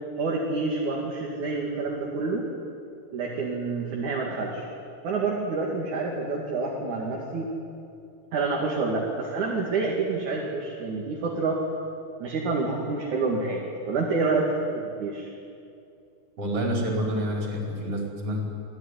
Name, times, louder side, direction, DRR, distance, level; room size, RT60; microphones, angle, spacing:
voice 1, 0.2-2.4 3.1-4.6 5.0-7.5 8.3-11.6 12.2-13.6 13.9-14.5 14.7-15.3, right 3 dB, 50° right, -2 dB, 3.4 m, -28 dB
voice 2, 16.4-18.6, equal, 35° right, -1 dB, 5.5 m, -28 dB
25.5 x 17.0 x 9.9 m, 2.5 s
omnidirectional pair, 5.0 m